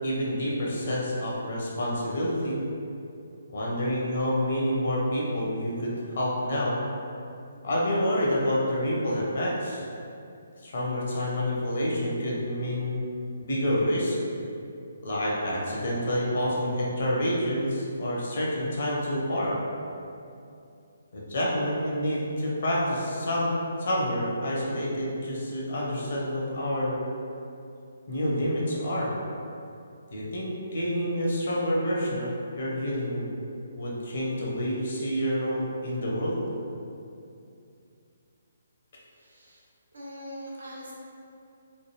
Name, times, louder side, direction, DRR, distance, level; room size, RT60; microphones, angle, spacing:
voice 1, 0.0-2.6 3.5-6.8 7.6-9.9 10.6-13.0 13.4-14.2 15.0-19.6 21.1-23.5 23.8-27.0 28.1-29.1 30.1-33.3 33.7-36.4, equal, 55° left, -4 dB, 0.7 m, -28 dB
voice 2, 39.1-39.6 39.9-40.9, equal, 70° right, -5 dB, 0.7 m, -42 dB
3.2 x 2.2 x 3.0 m, 2.6 s
figure-of-eight pair, 135°, 0 cm